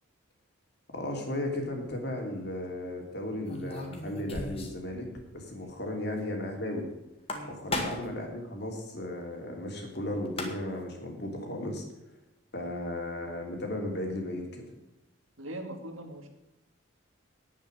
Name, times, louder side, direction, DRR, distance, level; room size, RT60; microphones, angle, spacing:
voice 1, 0.9-6.9 7.4-11.8 12.5-14.6, left 1 dB, 50° left, 1 dB, 3.1 m, -35 dB
sound 1, 1.6-2.0 3.4-4.9 5.1-5.2 5.6-5.7 7.1-8.2 9.9-10.0 10.2-10.8, left 1 dB, 30° left, 1.8 m, -36 dB
voice 2, 15.4-16.3, right 1 dB, 80° right, 4 dB, 2.3 m, -41 dB
10.5 x 9.1 x 6.3 m, 0.97 s
head